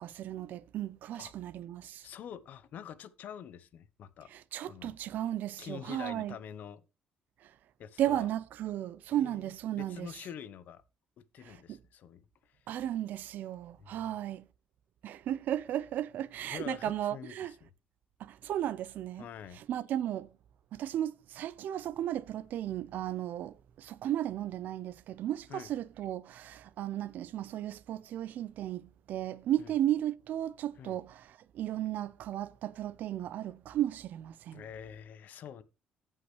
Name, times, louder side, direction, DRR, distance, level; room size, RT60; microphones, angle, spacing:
voice 1, 0.0-2.1 4.3-6.4 7.4-7.5 8.0-10.1 11.4-11.8 12.7-14.5 15.0-17.5 18.2-19.3 19.6-20.3 20.7-34.6, right 12 dB, 70° right, 0.6 m, -35 dB
voice 2, 2.0-4.3 4.6-5.0 5.6-6.8 7.8-8.3 9.1-10.8 11.2-12.2 12.5-12.6 13.8-14.1 16.5-17.7 19.2-19.6 25.5-25.7 29.6-29.7 30.8-31.0 34.5-35.6, left 8 dB, 65° left, 0.8 m, -46 dB
16.0 x 5.6 x 3.1 m
cardioid pair, 125°, 3 cm